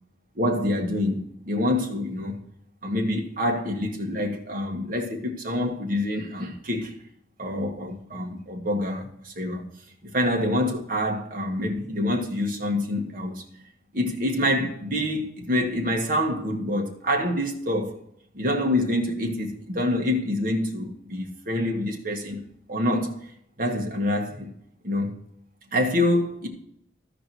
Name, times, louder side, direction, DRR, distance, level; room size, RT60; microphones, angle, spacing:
voice 1, 0.3-2.4 2.8-6.9 7.4-9.7 10.0-13.4 13.9-18.0 18.3-22.4 22.7-23.2 23.6-24.5 24.8-25.1 25.7-26.5, left 1 dB, 50° right, 1.7 m, -26 dB
14.5 x 5.1 x 4.6 m
head